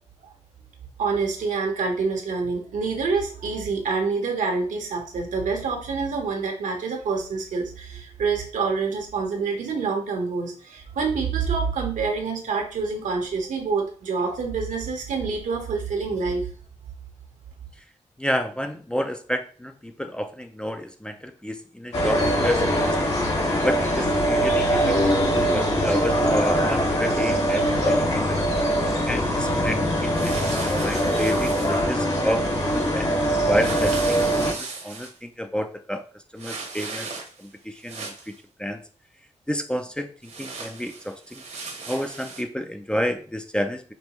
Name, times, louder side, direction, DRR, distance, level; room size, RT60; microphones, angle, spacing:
voice 1, 1.0-16.5, right 4 dB, 90° right, 2 dB, 1.2 m, -27 dB
voice 2, 18.2-23.0 23.6-28.5 29.1-33.1 33.5-36.0 36.3-37.1 37.4-38.3 38.6-38.8 39.5-41.4 41.9-43.9, equal, 5° left, 6 dB, 0.4 m, -30 dB
sound 1, 21.9-34.5, equal, 55° left, 1.7 m, -22 dB
sound 2, 30.1-31.9 33.6-35.2 36.4-37.5 37.8-38.4 40.2-42.4, right 4 dB, 60° right, 1.0 m, -37 dB
5.3 x 3.2 x 3.0 m, 0.40 s
wide cardioid pair, 130°, 13 cm